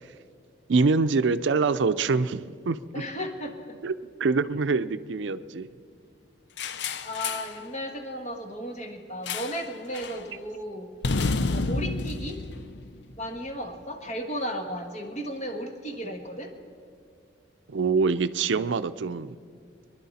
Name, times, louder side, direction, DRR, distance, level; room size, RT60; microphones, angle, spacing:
voice 1, 0.7-3.0 3.8-3.9 4.2-5.7 17.7-19.3, right 4 dB, 85° right, 13 dB, 0.5 m, -25 dB
voice 2, 2.9-3.8 7.0-10.9 11.4-12.4 13.2-16.5, equal, 40° left, 4 dB, 1.6 m, -35 dB
sound 1, 6.6-7.6 9.3-9.7 9.9-10.2 11.0-13.4, left 3 dB, 65° left, 0.5 m, -30 dB
24.0 x 11.0 x 4.2 m, 2.4 s
head